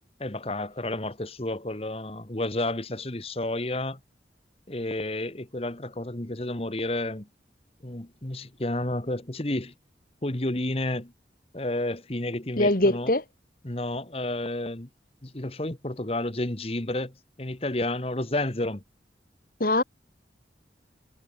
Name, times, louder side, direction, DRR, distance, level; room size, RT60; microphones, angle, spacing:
voice 1, 0.2-4.0 4.7-7.3 7.8-9.7 10.2-11.1 11.5-13.1 13.6-14.9 15.2-18.8, left 1 dB, 35° left, 1.5 m, -31 dB
voice 2, 12.6-13.2 19.6-19.8, left 1 dB, 50° left, 2.3 m, -22 dB
head